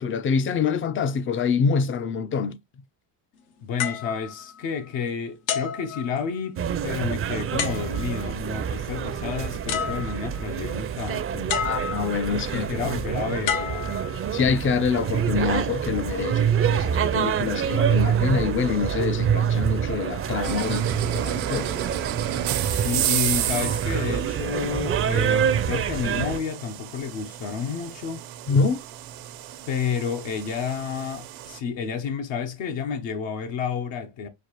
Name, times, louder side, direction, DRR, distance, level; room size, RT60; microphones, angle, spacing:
voice 1, 0.0-2.6 11.6-12.7 14.3-21.8 28.5-28.8, left 5 dB, 30° left, 0.4 m, -26 dB
voice 2, 3.6-11.6 12.3-14.0 22.7-28.2 29.7-34.3, left 6 dB, 70° left, 1.0 m, -30 dB
sound 1, 3.8-5.0 5.5-6.6 7.6-8.3 9.3-9.4 9.7-10.5 11.5-12.3 13.5-14.6 15.3-15.5, left 8 dB, 90° left, 1.2 m, -31 dB
sound 2, 6.6-26.4, right 8 dB, 30° right, 0.5 m, -26 dB
sound 3, 20.4-31.6, right 13 dB, 85° right, 0.9 m, -32 dB
6.4 x 2.4 x 3.0 m
cardioid pair, 105°, 46 cm